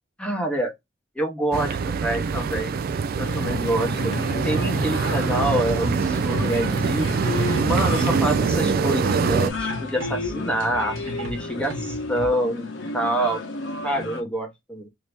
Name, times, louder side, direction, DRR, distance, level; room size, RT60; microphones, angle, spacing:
voice 1, 0.2-0.7 1.1-2.8 3.2-4.1 4.4-7.2 7.6-12.7 12.9-13.4 13.8-14.9, right 1 dB, 5° left, 1.0 m, -26 dB
sound 1, 1.5-9.5, right 5 dB, 50° right, 0.3 m, -24 dB
sound 2, 3.2-14.2, left 3 dB, 70° left, 1.0 m, -33 dB
sound 3, 3.3-12.3, equal, 80° right, 1.2 m, -36 dB
2.8 x 2.7 x 3.3 m
head